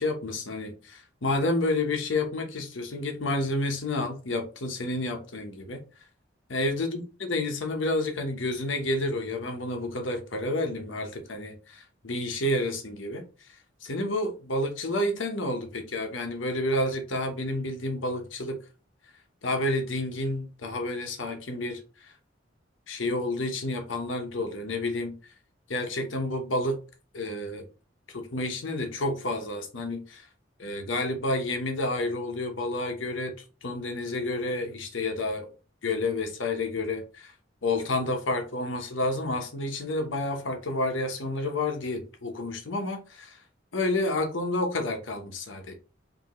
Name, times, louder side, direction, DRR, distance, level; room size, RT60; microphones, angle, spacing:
voice 1, 0.0-5.8 6.5-13.2 13.8-18.6 19.4-22.1 22.9-25.1 25.7-26.8 27.1-27.7 28.1-30.3 30.6-33.3 33.6-35.5 35.8-37.3 37.6-43.4 43.7-45.7, left 2 dB, 85° left, 1.1 m, -30 dB
5.1 x 2.8 x 3.1 m
head